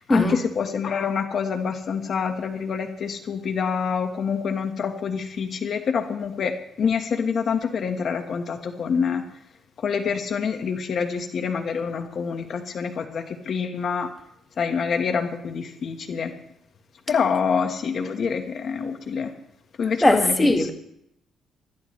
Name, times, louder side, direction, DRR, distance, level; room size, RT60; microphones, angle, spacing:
voice 1, 0.0-9.2 9.8-14.1 14.6-16.3 17.1-19.3 19.8-20.7, left 6 dB, 55° left, 6 dB, 1.4 m, -26 dB
voice 2, 20.0-20.7, left 1 dB, 15° left, 5 dB, 1.9 m, -19 dB
20.5 x 14.0 x 3.2 m, 0.75 s
cardioid pair, 90°, 0 cm